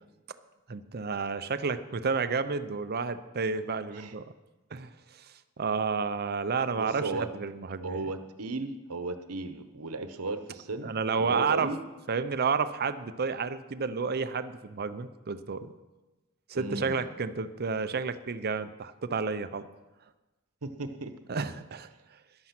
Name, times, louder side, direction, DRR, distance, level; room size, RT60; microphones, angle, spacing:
voice 1, 0.7-4.3 4.7-4.9 5.2-5.3 5.6-8.1 10.8-11.7 12.1-15.7 16.5-19.7 21.3-21.9, right 5 dB, 45° right, 12 dB, 0.7 m, -31 dB
voice 2, 6.8-7.3 7.8-10.9 11.2-11.8 16.5-17.1 20.6-21.1, right 2 dB, 85° right, 9 dB, 1.1 m, -35 dB
14.0 x 10.5 x 6.0 m, 1.1 s
head